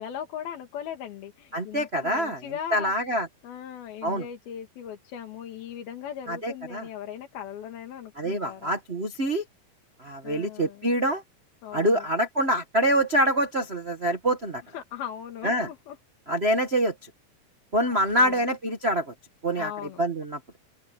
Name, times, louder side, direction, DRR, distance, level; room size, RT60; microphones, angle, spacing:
voice 1, 0.0-2.9 3.4-8.7 10.2-10.9 11.6-12.1 14.7-16.0 18.2-18.4 19.6-20.0, left 9 dB, 85° left, 3.9 m, -38 dB
voice 2, 1.5-2.4 2.7-3.3 4.0-4.2 6.3-6.9 8.2-9.4 10.0-11.2 11.7-14.6 15.4-15.7 16.3-16.9 17.7-19.1 19.4-19.7 20.0-20.4, right 1 dB, 80° right, 0.5 m, -25 dB
open air
omnidirectional pair, 4.2 m